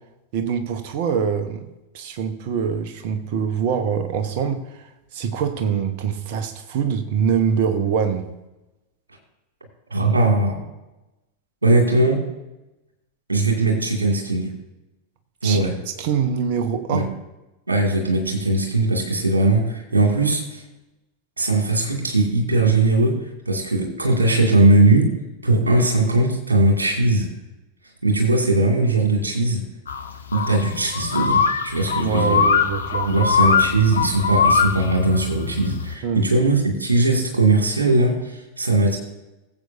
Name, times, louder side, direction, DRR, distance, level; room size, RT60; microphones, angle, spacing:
voice 1, 0.3-1.7 1.9-4.8 5.1-8.3 15.4-15.6 15.9-17.1 32.0-33.2 36.0-36.2, right 7 dB, 50° right, 9 dB, 1.1 m, -24 dB
voice 2, 9.9-10.6 11.6-12.2 13.3-14.5 15.4-15.7 16.9-17.0 17.7-20.6 21.4-23.2 23.5-25.1 25.4-27.3 28.0-29.6 30.3-32.4 33.1-39.0, right 2 dB, 75° right, 1 dB, 2.4 m, -19 dB
sound 1, 29.9-35.9, left 5 dB, 70° left, 0.8 m, -22 dB
19.0 x 8.0 x 2.7 m, 1.0 s
figure-of-eight pair, 90°, 0 cm